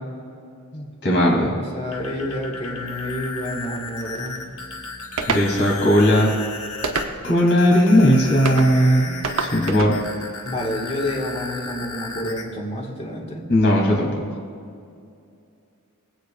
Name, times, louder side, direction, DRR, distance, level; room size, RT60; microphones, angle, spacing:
voice 1, 0.7-1.5 5.3-6.3 7.2-10.0 13.5-14.1, equal, 55° left, -1 dB, 3.1 m, -17 dB
voice 2, 1.3-4.5 10.4-13.4, left 1 dB, 30° left, -1 dB, 1.9 m, -29 dB
sound 1, 1.8-12.4, left 3 dB, 90° left, 1.6 m, -35 dB
sound 2, 5.2-5.5 6.8-7.4 8.5-8.7 9.2-10.0, right 4 dB, 75° right, 0.9 m, -26 dB
24.0 x 8.3 x 2.6 m, 2.4 s
head